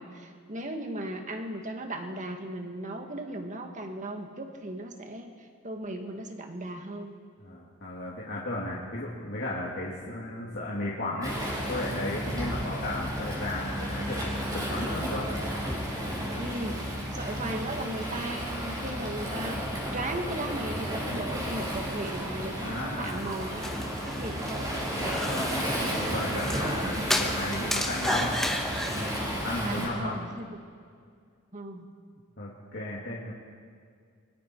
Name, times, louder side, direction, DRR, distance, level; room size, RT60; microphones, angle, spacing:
voice 1, 0.0-5.3 5.6-7.2 16.4-16.8 17.1-19.6 19.9-24.7 26.7-27.0 29.5-30.6 31.5-31.9, right 1 dB, 35° right, 4 dB, 2.0 m, -36 dB
voice 2, 7.4-11.3 11.7-15.3 22.6-23.2 25.0-25.6 25.9-28.3 28.9-30.2 32.4-33.3, left 1 dB, 55° left, -6 dB, 2.9 m, -35 dB
Waves surf, 11.2-29.9, equal, 15° right, 4.9 m, -33 dB
sound 1, 23.1-29.2, left 1 dB, ahead, 1.4 m, -33 dB
30.0 x 24.0 x 4.7 m, 2.1 s
head